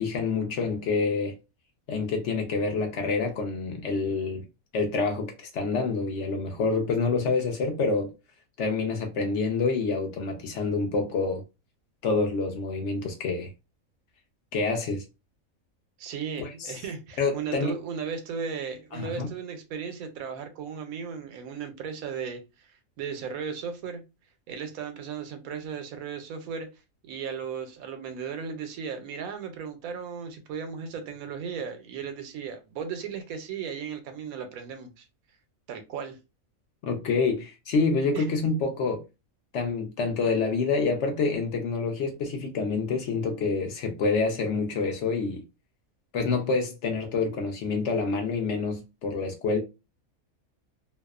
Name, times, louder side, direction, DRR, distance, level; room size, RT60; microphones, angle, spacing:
voice 1, 0.0-1.3 1.9-4.4 4.7-8.1 8.6-11.4 12.0-13.5 14.5-15.0 16.4-16.7 17.2-17.7 18.9-19.3 36.8-39.0 39.5-45.4 46.1-49.6, left 4 dB, 65° left, 0.8 m, -27 dB
voice 2, 16.0-24.0 24.5-26.7 27.0-35.1 35.7-36.2 38.1-38.3, right 6 dB, 85° right, 1.1 m, -36 dB
2.7 x 2.0 x 2.3 m
omnidirectional pair, 1.4 m